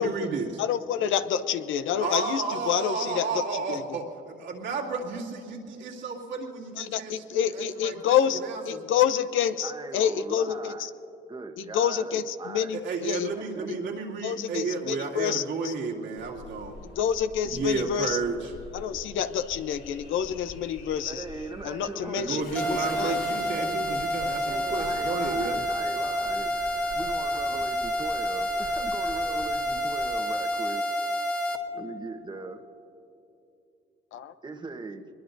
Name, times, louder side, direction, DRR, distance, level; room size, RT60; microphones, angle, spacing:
voice 1, 0.0-0.5 2.0-8.2 8.4-8.8 12.7-16.8 17.4-18.5 22.2-25.6, right 4 dB, 70° right, 2.5 m, -32 dB
voice 2, 0.6-4.0 6.8-8.4 8.7-10.9 11.7-13.3 13.7-13.8 14.2-15.7 17.0-18.2 18.7-21.2 21.6-23.2 34.1-34.3, left 9 dB, 80° left, 0.7 m, -28 dB
voice 3, 9.6-10.9 11.3-12.7 13.3-13.9 21.0-23.3 23.5-23.9 24.5-26.5 26.9-30.9 31.7-32.6 34.4-35.1, right 3 dB, 20° right, 1.1 m, -39 dB
sound 1, 16.2-30.2, left 4 dB, 55° left, 4.0 m, -45 dB
sound 2, 22.6-31.6, equal, 5° left, 1.8 m, -29 dB
23.0 x 21.5 x 2.7 m
cardioid pair, 90°, 20 cm